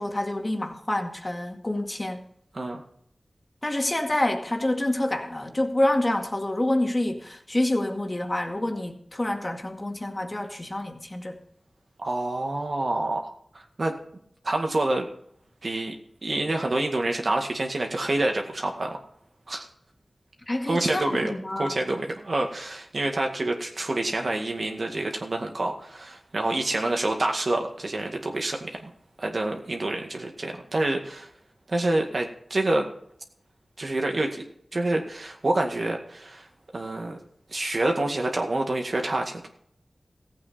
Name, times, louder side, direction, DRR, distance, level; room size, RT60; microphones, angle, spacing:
voice 1, 0.0-2.2 3.6-11.4 20.5-21.8, left 1 dB, 30° left, 3 dB, 2.0 m, -27 dB
voice 2, 12.0-14.0 14.4-15.1 15.6-16.0 16.2-19.0 19.5-19.7 20.7-28.9 29.2-31.3 31.7-32.9 33.8-34.4 34.7-36.5 36.7-37.2 37.5-39.5, right 2 dB, 65° right, 2 dB, 2.0 m, -27 dB
15.5 x 8.4 x 4.4 m, 0.65 s
wide cardioid pair, 50°, 0 cm